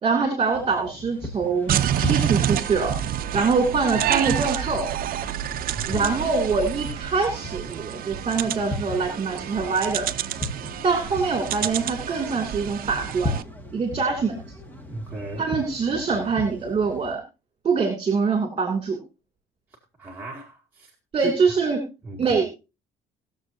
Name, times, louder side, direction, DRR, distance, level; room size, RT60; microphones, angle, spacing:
voice 1, 0.0-2.9 3.3-4.9 5.9-10.1 10.8-13.4 13.7-14.4 15.4-17.2 17.6-19.0 21.1-21.9 22.2-22.5, right 4 dB, 30° right, 2.7 m, -24 dB
sound 1, 0.5-17.2, left 1 dB, 10° left, 1.8 m, -38 dB
sound 2, 1.7-13.4, right 10 dB, 60° right, 0.7 m, -28 dB
voice 2, 5.7-6.2 14.9-15.5 20.0-20.9 21.2-21.3 22.0-22.4, right 2 dB, 10° right, 2.2 m, -35 dB
21.0 x 7.1 x 2.7 m
cardioid pair, 110°, 17 cm